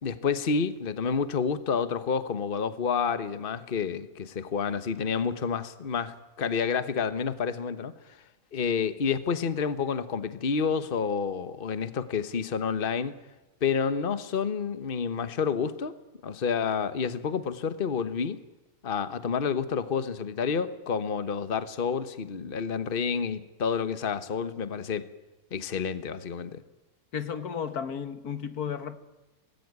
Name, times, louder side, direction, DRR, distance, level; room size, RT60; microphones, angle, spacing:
voice 1, 0.0-7.9 8.5-13.2 13.6-15.9 16.2-18.4 18.8-25.1 25.5-26.6, left 6 dB, 40° left, 13 dB, 1.3 m, -29 dB
voice 2, 27.1-29.0, left 7 dB, 85° left, 11 dB, 2.0 m, -33 dB
25.5 x 19.0 x 9.5 m, 1.1 s
omnidirectional pair, 1.6 m